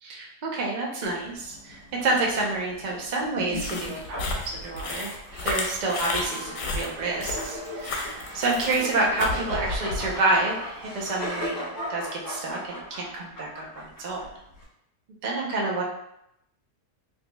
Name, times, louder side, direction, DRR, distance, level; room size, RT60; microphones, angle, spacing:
voice 1, 0.0-4.2 4.5-5.1 5.4-14.3 15.2-15.8, right 2 dB, 65° right, -2 dB, 0.4 m, -28 dB
sound 1, 1.0-14.6, left 1 dB, 70° left, 1.8 m, -38 dB
sound 2, 3.5-10.1, left 3 dB, 85° left, 1.3 m, -32 dB
Crowd, 4.9-11.7, right 2 dB, 85° right, 1.2 m, -44 dB
4.0 x 2.9 x 2.2 m, 0.81 s
omnidirectional pair, 1.7 m